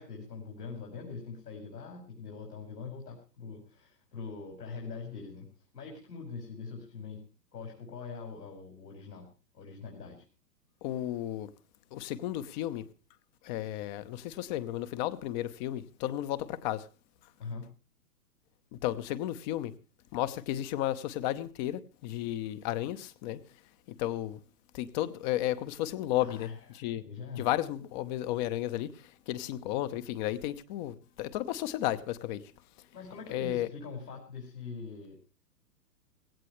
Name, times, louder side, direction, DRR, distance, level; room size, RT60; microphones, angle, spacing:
voice 1, 0.0-5.5 5.7-7.2 7.5-9.3 9.5-10.2 17.4-17.7 26.2-27.5 32.9-35.2, left 4 dB, 80° left, 5.5 m, -43 dB
voice 2, 10.8-11.5 11.9-12.8 13.4-16.9 18.7-19.7 20.1-23.4 24.0-24.4 24.7-26.5 26.8-27.0 27.4-32.5 33.3-33.7, left 13 dB, 30° left, 0.9 m, -33 dB
17.5 x 17.0 x 3.2 m
hypercardioid pair, 125°, 48 cm